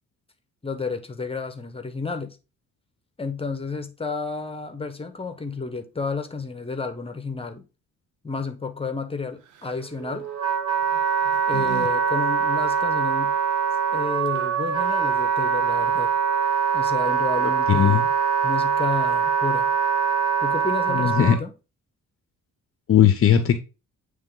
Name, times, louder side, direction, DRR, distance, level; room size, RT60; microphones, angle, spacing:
voice 1, 0.6-2.4 3.2-7.6 8.2-10.3 11.5-13.3 13.9-16.1 16.7-18.1 18.4-19.7 20.4-21.5, left 4 dB, 20° left, 1.2 m, -31 dB
sound 1, 9.4-9.9 10.8-11.9 12.2-12.3 14.0-14.1 14.2-14.7, right 9 dB, 80° right, 0.9 m, -36 dB
Wind instrument woodwind instrument, 9.8-21.4, right 7 dB, 55° right, 1.5 m, -23 dB
voice 2, 17.7-18.0 20.9-21.4 22.9-23.6, left 9 dB, 45° left, 0.8 m, -18 dB
8.7 x 3.3 x 3.8 m
cardioid pair, 90°, 30 cm